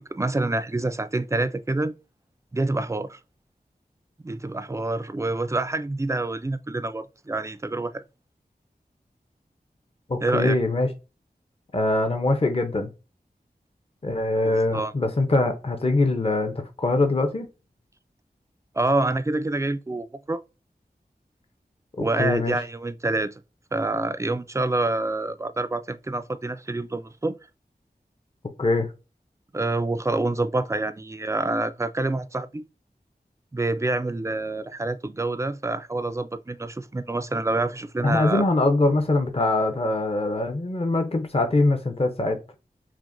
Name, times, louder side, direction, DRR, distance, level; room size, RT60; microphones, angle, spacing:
voice 1, 0.0-1.9 2.5-3.2 4.2-8.0 10.2-10.6 14.4-14.9 18.7-20.4 22.0-23.4 23.7-27.3 29.5-32.6 33.5-38.4, right 2 dB, 20° right, 0.4 m, -27 dB
voice 2, 10.1-10.9 11.7-12.9 14.0-17.5 22.0-22.6 28.6-28.9 38.0-42.4, left 2 dB, 35° left, 0.6 m, -23 dB
5.9 x 2.1 x 2.5 m
wide cardioid pair, 55°, 17 cm